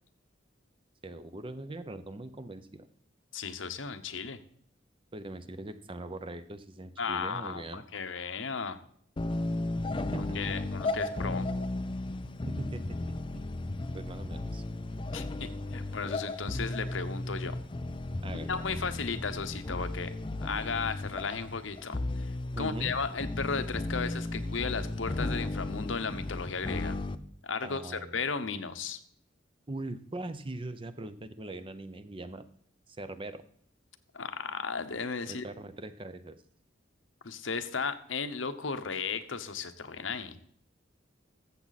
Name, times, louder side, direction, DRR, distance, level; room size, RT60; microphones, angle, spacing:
voice 1, 1.0-2.9 5.1-7.8 10.1-10.6 12.4-13.0 13.3-13.5 13.9-14.6 18.2-18.6 22.5-22.9 27.6-28.1 29.7-32.5 32.9-33.4 35.3-36.4, right 2 dB, 25° right, 11 dB, 0.6 m, -41 dB
voice 2, 3.3-4.4 7.0-8.8 10.2-11.5 15.1-17.6 18.5-20.1 20.4-27.0 27.4-29.0 34.1-35.4 37.2-40.4, left 5 dB, 80° left, 9 dB, 1.0 m, -35 dB
sound 1, 9.2-27.1, left 2 dB, 25° left, 0.5 m, -35 dB
14.0 x 7.5 x 4.1 m, 0.62 s
head